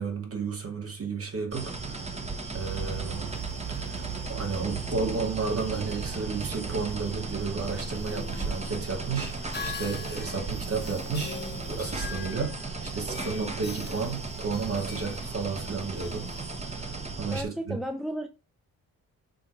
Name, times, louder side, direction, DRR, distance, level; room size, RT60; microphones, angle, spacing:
voice 1, 0.0-2.2 2.5-3.3 3.7-11.4 11.7-16.3 16.6-17.8, right 4 dB, 40° right, 2.5 m, -33 dB
sound 1, 1.5-17.4, right 3 dB, 20° right, 1.3 m, -36 dB
sound 2, 2.6-7.9, right 8 dB, 75° right, 1.2 m, -39 dB
sound 3, 7.6-17.1, left 6 dB, 30° left, 0.9 m, -44 dB
voice 2, 17.3-18.3, equal, ahead, 0.7 m, -33 dB
6.4 x 3.6 x 4.7 m
cardioid pair, 90°, 36 cm